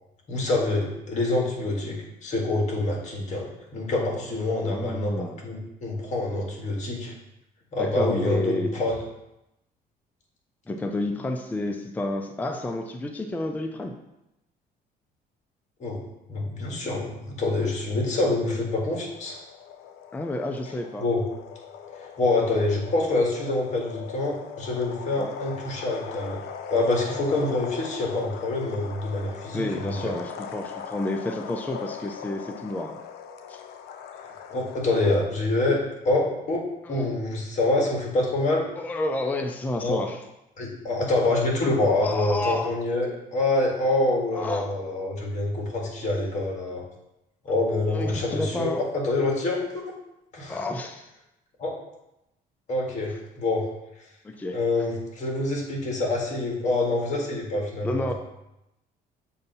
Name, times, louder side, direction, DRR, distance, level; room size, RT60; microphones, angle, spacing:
voice 1, 0.3-7.1 7.7-9.0 15.8-16.0 16.3-19.4 21.0-21.2 22.2-26.4 26.7-30.1 34.5-38.7 39.8-40.0 40.6-46.8 47.4-49.9 50.3-50.6 51.6-51.7 52.7-53.6 54.5-58.1, left 2 dB, 45° left, -1 dB, 1.7 m, -26 dB
voice 2, 4.6-5.4 7.8-8.7 10.7-14.0 20.1-21.1 25.2-25.3 29.5-33.0 33.5-33.6 36.8-37.1 38.8-40.2 42.0-42.8 44.3-44.7 47.9-48.8 50.5-51.1 54.2-54.6 57.8-58.1, left 1 dB, 10° left, 5 dB, 0.4 m, -30 dB
sound 1, 18.9-35.3, left 7 dB, 70° left, 0.5 m, -40 dB
6.8 x 2.7 x 5.3 m, 0.90 s
cardioid pair, 110°, 17 cm